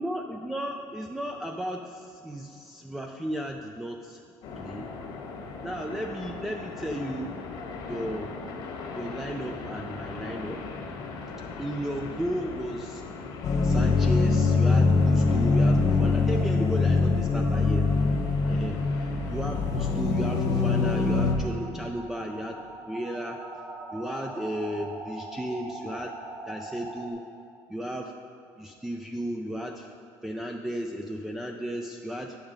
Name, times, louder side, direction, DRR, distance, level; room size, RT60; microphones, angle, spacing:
voice 1, 0.0-4.2 4.6-4.9 5.6-7.3 7.9-8.4 8.9-10.6 11.6-13.0 13.6-17.9 18.5-22.6 22.9-23.4 23.9-26.1 26.5-27.2 27.7-28.1 28.6-29.9 30.2-32.4, equal, 5° right, 2 dB, 0.4 m, -34 dB
sound 1, 4.4-21.5, left 4 dB, 65° left, 1.3 m, -40 dB
sound 2, 13.4-21.3, left 3 dB, 45° left, 0.8 m, -23 dB
sound 3, 15.3-27.1, right 2 dB, 35° right, 1.1 m, -43 dB
9.2 x 6.0 x 5.2 m, 2.4 s
cardioid pair, 135°, 8 cm